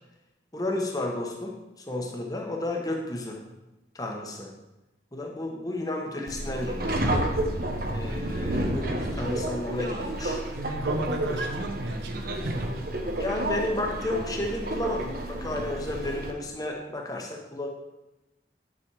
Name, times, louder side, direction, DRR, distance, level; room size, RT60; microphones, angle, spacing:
voice 1, 0.5-3.4 3.9-4.5 5.1-7.2 7.9-10.4 13.2-17.7, left 1 dB, 20° left, 1 dB, 1.2 m, -32 dB
Subway metro underground, 6.3-16.3, right 1 dB, 50° right, 1.1 m, -30 dB
voice 2, 10.5-12.7, right 1 dB, 80° right, 3 dB, 1.3 m, -32 dB
10.0 x 6.3 x 4.8 m, 0.99 s
head